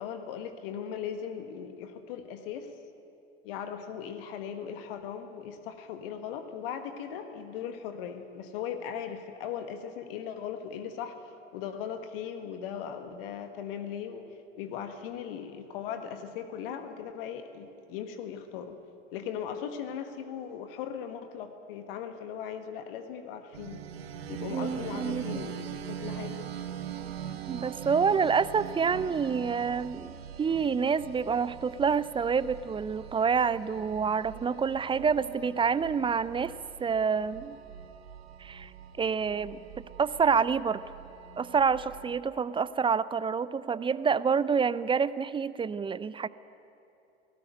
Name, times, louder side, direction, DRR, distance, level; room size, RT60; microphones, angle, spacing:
voice 1, 0.0-2.7 3.4-11.2 11.5-14.2 14.6-18.8 19.1-23.8 24.3-26.5, left 8 dB, 60° left, 7 dB, 1.6 m, -38 dB
sound 1, 23.5-42.2, right 9 dB, 70° right, 1.2 m, -42 dB
voice 2, 24.5-25.5 27.5-30.1 30.4-36.5 36.8-37.6 38.4-38.7 39.0-39.6 40.0-40.8 41.4-46.3, right 6 dB, 15° right, 17 dB, 0.5 m, -27 dB
18.5 x 17.0 x 9.2 m, 2.8 s
figure-of-eight pair, 70°, 32 cm